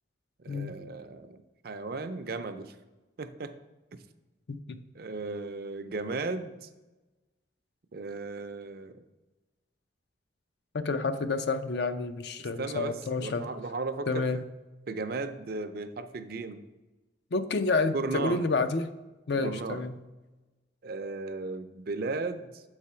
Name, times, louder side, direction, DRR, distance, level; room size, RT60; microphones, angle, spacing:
voice 1, 0.4-1.4 1.6-2.7 3.2-3.5 5.0-6.7 7.9-9.0 12.6-14.4 14.9-16.6 17.9-18.4 19.3-19.8 20.8-22.6, right 3 dB, 55° right, 9 dB, 0.5 m, -35 dB
voice 2, 4.5-4.8 10.7-13.5 14.1-14.5 17.3-18.9 19.3-20.0, left 3 dB, 60° left, 9 dB, 0.5 m, -29 dB
7.5 x 4.8 x 4.3 m, 1.1 s
head